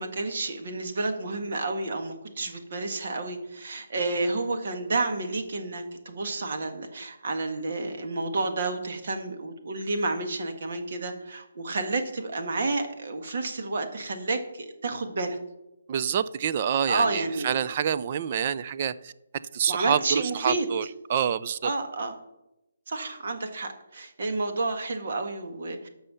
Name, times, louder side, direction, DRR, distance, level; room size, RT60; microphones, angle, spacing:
voice 1, 0.0-15.4 16.9-17.5 19.7-20.7 21.6-22.2 22.9-25.9, right 3 dB, 55° right, 1.7 m, -30 dB
voice 2, 15.9-19.1 19.5-20.8 21.1-21.7, right 8 dB, 30° right, 0.4 m, -27 dB
13.0 x 5.6 x 6.9 m
hypercardioid pair, 165°, 0 cm